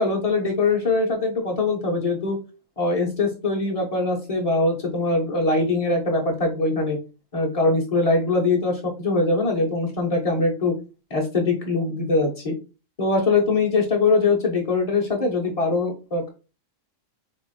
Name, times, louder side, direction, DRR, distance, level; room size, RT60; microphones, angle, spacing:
voice 1, 0.0-2.4 2.8-7.0 7.3-10.7 11.1-12.5 13.0-16.3, left 3 dB, 30° left, 1 dB, 1.1 m, -22 dB
4.2 x 2.9 x 4.2 m, 0.32 s
omnidirectional pair, 1.4 m